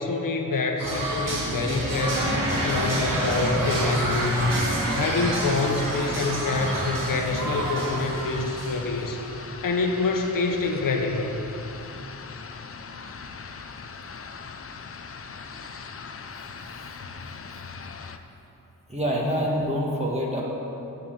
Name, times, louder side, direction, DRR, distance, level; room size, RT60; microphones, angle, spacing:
voice 1, 0.0-2.3 2.6-4.7 4.9-9.2 9.6-11.4, left 3 dB, 75° left, 3 dB, 1.1 m, -26 dB
sound 1, 0.8-9.3, right 1 dB, 75° right, 2.1 m, -28 dB
sound 2, 4.2-18.2, left 5 dB, 40° left, 0.5 m, -40 dB
voice 2, 18.9-20.4, equal, 20° right, -3 dB, 1.4 m, -26 dB
8.1 x 7.1 x 7.9 m, 3.0 s
wide cardioid pair, 130°, 33 cm